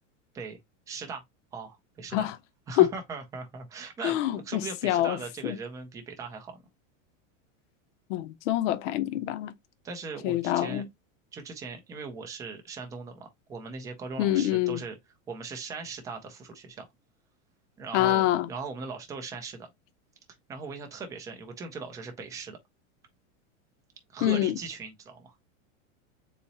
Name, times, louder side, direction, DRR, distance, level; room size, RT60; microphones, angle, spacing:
voice 1, 0.9-1.2 1.5-2.3 2.7-6.6 9.8-10.8 11.3-15.0 15.3-16.9 17.8-19.7 20.5-22.6 24.1-25.4, right 4 dB, 10° right, 0.4 m, -39 dB
voice 2, 4.0-5.2 5.4-5.6 8.1-9.5 10.2-10.9 14.2-14.8 17.9-18.5 24.2-24.5, left 14 dB, 65° left, 0.7 m, -25 dB
4.1 x 2.8 x 4.0 m
supercardioid pair, 165°, 40 cm